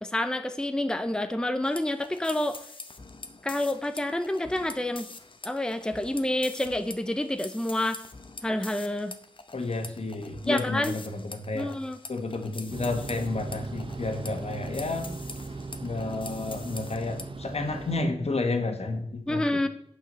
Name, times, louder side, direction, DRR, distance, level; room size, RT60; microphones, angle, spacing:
voice 1, 0.0-2.6 3.4-5.1 5.4-8.0 8.4-9.1 10.5-10.9 11.5-12.0 19.3-19.7, left 1 dB, 5° left, 8 dB, 0.6 m, -28 dB
sound 1, 1.6-17.3, left 3 dB, 45° left, 0.9 m, -45 dB
voice 2, 9.5-11.7 12.1-15.1 15.8-19.7, left 3 dB, 65° left, 5 dB, 1.5 m, -31 dB
sound 2, 12.7-18.0, right 3 dB, 50° right, 0.8 m, -38 dB
9.1 x 4.9 x 6.8 m, 0.69 s
wide cardioid pair, 85°, 12 cm